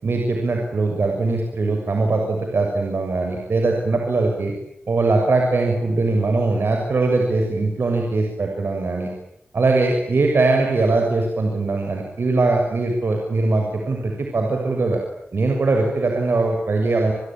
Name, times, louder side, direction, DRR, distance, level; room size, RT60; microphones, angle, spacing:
voice 1, 0.0-4.5 4.9-9.1 9.5-15.0 15.3-17.1, right 3 dB, 70° right, 2 dB, 6.8 m, -21 dB
30.0 x 22.0 x 9.0 m, 0.78 s
wide cardioid pair, 80°, 4 cm